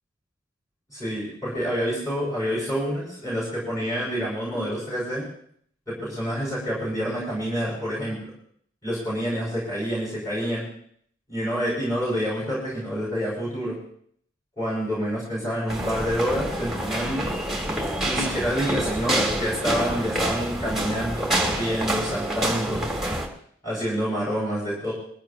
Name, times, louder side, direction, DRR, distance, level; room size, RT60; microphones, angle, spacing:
voice 1, 0.9-5.2 5.9-8.2 8.8-10.7 11.3-13.8 14.6-17.3 18.0-22.9 23.6-24.9, equal, 20° left, -8 dB, 5.8 m, -27 dB
sound 1, 15.7-23.3, right 1 dB, ahead, 2.2 m, -27 dB
21.0 x 15.0 x 2.9 m, 0.63 s
head